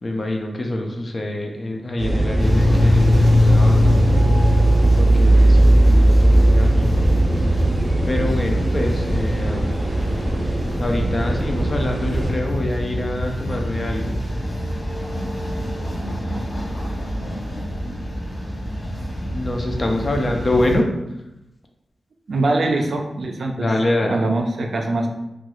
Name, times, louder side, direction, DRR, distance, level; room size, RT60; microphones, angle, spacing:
voice 1, 0.0-4.0 4.9-6.9 8.1-9.8 10.8-14.2 19.3-20.8 23.6-24.2, left 1 dB, 30° left, 2 dB, 0.4 m, -25 dB
sound 1, 2.0-12.3, right 1 dB, 10° right, 0.6 m, -18 dB
sound 2, 2.4-20.8, left 1 dB, 65° left, 0.8 m, -23 dB
voice 2, 22.3-23.7 24.0-25.1, right 2 dB, 55° right, 2 dB, 0.4 m, -22 dB
3.0 x 2.3 x 2.9 m, 0.89 s
wide cardioid pair, 175°, 0 cm